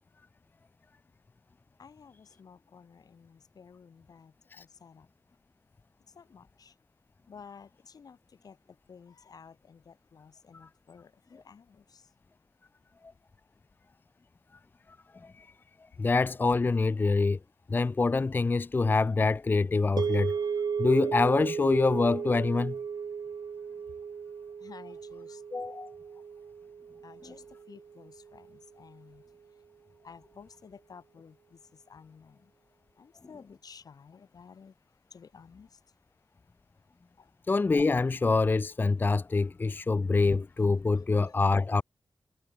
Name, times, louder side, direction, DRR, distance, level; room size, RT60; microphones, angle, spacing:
voice 1, 1.8-5.1 6.1-6.8 7.3-12.1 24.6-25.4 26.2-26.3 27.0-29.2 30.0-32.5 33.0-34.8 35.1-35.8 37.2-37.3 40.9-41.6, left 6 dB, 65° left, 2.7 m, -53 dB
voice 2, 16.0-17.4 17.7-20.3 20.8-22.8 25.5-25.9 37.5-41.8, left 3 dB, 30° left, 0.5 m, -25 dB
sound 1, 20.0-28.3, right 6 dB, 70° right, 1.8 m, -35 dB
wide cardioid pair, 165°, 7 cm